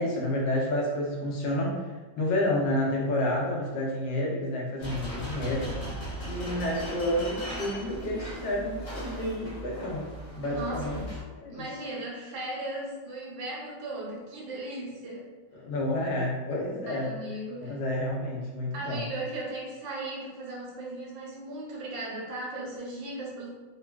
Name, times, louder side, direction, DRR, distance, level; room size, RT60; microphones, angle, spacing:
voice 1, 0.0-1.9 2.2-5.7 6.2-10.1 10.3-11.1 11.4-11.6 15.5-17.1 17.6-19.1, left 1 dB, 80° left, -3 dB, 1.4 m, -29 dB
sound 1, 4.8-11.2, equal, 55° left, 0.3 m, -38 dB
voice 2, 10.4-11.0 11.5-15.3 16.9-17.8 18.7-23.5, right 2 dB, 85° right, -5 dB, 1.6 m, -37 dB
3.8 x 2.3 x 2.2 m, 1.3 s
omnidirectional pair, 2.0 m